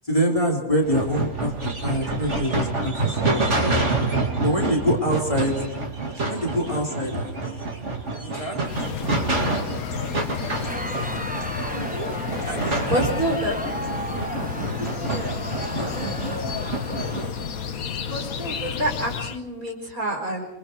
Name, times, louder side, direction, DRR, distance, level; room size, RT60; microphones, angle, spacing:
voice 1, 0.1-3.8 4.4-5.6 6.3-7.6 8.2-8.6 12.4-13.0 14.5-14.9 15.8-16.5, equal, 20° left, -1 dB, 3.5 m, -26 dB
sound 1, 0.8-17.3, right 3 dB, 50° right, 2.8 m, -28 dB
sound 2, 8.6-19.4, left 7 dB, 65° left, 1.5 m, -31 dB
Crowd, 10.5-18.0, right 1 dB, 10° right, 0.5 m, -36 dB
voice 2, 11.7-12.1 12.8-13.6 15.0-15.3 18.0-20.5, right 1 dB, 65° right, 2 dB, 5.2 m, -28 dB
27.5 x 24.5 x 4.6 m, 0.84 s
omnidirectional pair, 1.6 m